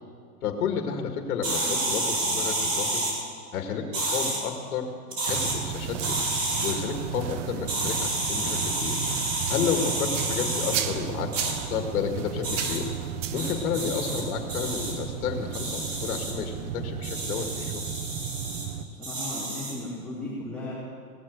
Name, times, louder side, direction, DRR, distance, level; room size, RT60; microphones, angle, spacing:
voice 1, 0.4-3.1 3.5-4.9 5.2-6.2 6.6-9.0 9.5-12.9 13.3-17.8, left 7 dB, 65° left, 5 dB, 2.0 m, -31 dB
sound 1, 1.4-3.1 3.9-4.4 5.1-5.6 6.0-6.7 7.7-10.8 11.3-11.5 12.4-12.8 13.4-14.2 14.5-14.9 15.5-16.3 17.0-18.7 19.0-19.8, right 2 dB, 85° right, 4.8 m, -29 dB
sound 2, 5.3-18.8, right 9 dB, 50° right, 1.0 m, -34 dB
voice 2, 18.9-20.7, left 1 dB, ahead, -11 dB, 3.1 m, -36 dB
17.5 x 7.5 x 8.0 m, 2.2 s
hypercardioid pair, 130°, 46 cm